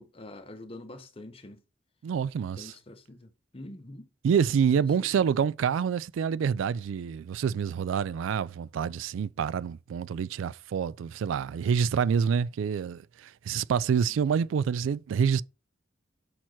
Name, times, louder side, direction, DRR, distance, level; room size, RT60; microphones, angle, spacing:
voice 1, 0.0-1.6 2.5-4.1 4.7-5.4 14.0-14.1, left 1 dB, 30° left, 0.8 m, -46 dB
voice 2, 2.0-2.7 4.2-15.4, right 7 dB, 80° right, 0.3 m, -27 dB
5.8 x 4.5 x 4.4 m
head